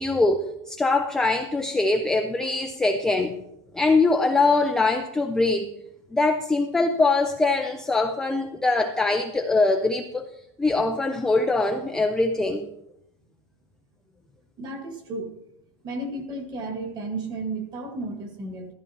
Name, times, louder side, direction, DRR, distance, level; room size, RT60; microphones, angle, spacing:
voice 1, 0.0-3.4 3.7-5.7 6.1-10.2 10.6-12.7, left 3 dB, 5° left, 4 dB, 0.4 m, -23 dB
voice 2, 14.6-15.3 15.8-18.7, right 2 dB, 25° right, 4 dB, 1.8 m, -33 dB
13.5 x 13.5 x 2.9 m, 0.82 s
supercardioid pair, 170°, 16 cm